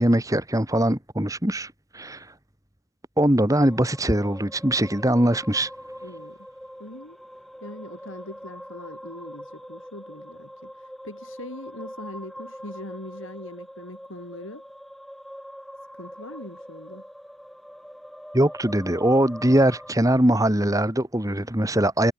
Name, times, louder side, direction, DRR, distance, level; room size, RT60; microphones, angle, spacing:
voice 1, 0.0-2.3 3.2-5.7 18.3-22.1, right 1 dB, 15° right, 2.5 m, -21 dB
sound 1, 3.6-19.9, equal, ahead, 3.3 m, -43 dB
voice 2, 6.0-6.4 6.8-7.2 7.6-14.6 15.9-17.0, left 1 dB, 65° left, 4.2 m, -41 dB
head